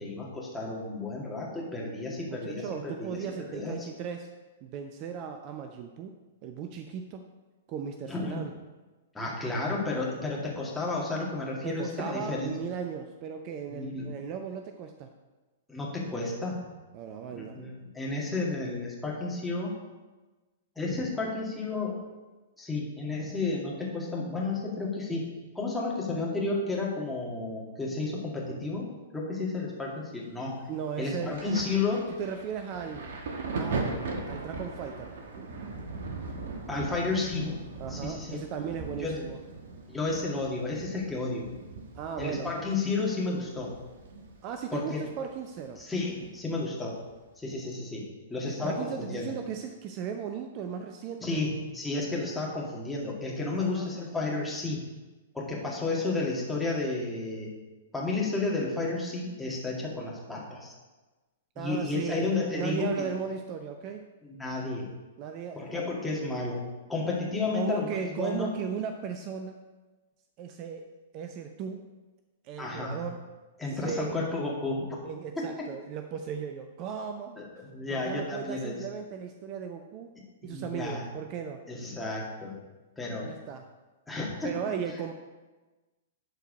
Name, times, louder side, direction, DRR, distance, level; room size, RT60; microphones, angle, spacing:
voice 1, 0.0-3.9 8.1-8.4 9.1-12.6 13.7-14.1 15.7-16.6 17.3-19.8 20.8-22.0 22.6-25.3 25.5-28.9 29.1-30.6 31.0-32.1 36.7-37.6 37.9-38.4 39.0-39.2 39.9-41.5 42.2-43.7 44.7-45.0 45.8-47.0 47.4-49.3 51.2-54.8 55.3-57.5 57.9-60.7 61.6-63.1 64.2-64.9 65.6-66.6 66.9-68.5 72.6-73.1 73.6-74.9 75.4-75.5 77.4-78.8 80.4-81.0 81.7-82.6 83.0-83.3 84.1-84.5, left 3 dB, 5° left, -4 dB, 2.2 m, -32 dB
voice 2, 2.3-4.3 4.6-6.2 6.4-7.3 7.7-8.5 11.6-15.1 16.9-17.6 30.7-31.9 32.2-33.1 33.5-35.5 36.9-37.0 37.8-39.4 41.9-42.5 44.4-45.8 48.4-51.4 53.5-54.1 61.6-64.0 65.2-65.9 67.5-69.6 70.4-70.8 71.1-71.8 72.4-73.2 73.7-74.2 75.0-77.4 77.9-80.1 80.4-81.6 83.2-83.7 84.4-85.1, right 7 dB, 35° right, 6 dB, 0.6 m, -37 dB
Thunder, 31.3-44.7 44.9-46.3 47.1-47.3, right 3 dB, 60° right, 1.2 m, -39 dB
11.5 x 4.6 x 5.3 m, 1.2 s
figure-of-eight pair, 110°, 0 cm